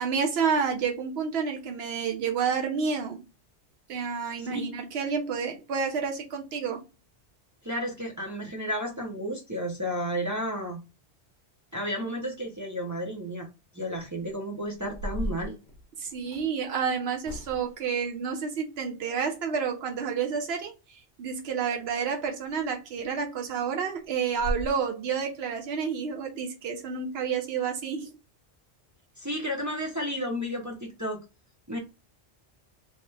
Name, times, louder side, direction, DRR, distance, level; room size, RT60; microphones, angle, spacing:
voice 1, 0.0-3.2 3.9-6.8 16.0-20.7 21.2-28.1, right 6 dB, 65° right, 1.0 m, -29 dB
voice 2, 7.6-10.8 11.7-13.5 13.7-15.6 29.2-31.2 31.7-31.8, equal, 20° right, 0.5 m, -32 dB
sound 1, 14.8-16.5 17.2-17.9 22.4-22.5 23.0-23.1 23.5-23.6 24.0-24.1 24.3-24.7, equal, 50° left, 0.7 m, -36 dB
2.8 x 2.1 x 3.2 m
omnidirectional pair, 1.2 m